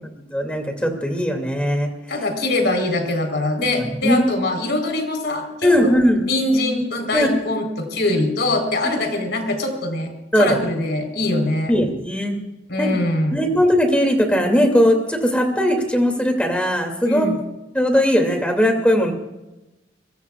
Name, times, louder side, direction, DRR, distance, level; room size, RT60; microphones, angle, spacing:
voice 1, 0.3-1.9 3.8-4.2 5.6-6.2 7.1-7.3 10.3-10.6 11.7-12.3 12.8-13.0 13.3-17.3 17.7-19.1, equal, 5° left, 3 dB, 2.6 m, -19 dB
voice 2, 2.1-5.9 6.3-11.7 12.7-13.4 17.0-17.4, left 2 dB, 65° left, 3 dB, 4.1 m, -23 dB
24.0 x 22.0 x 2.4 m, 0.99 s
head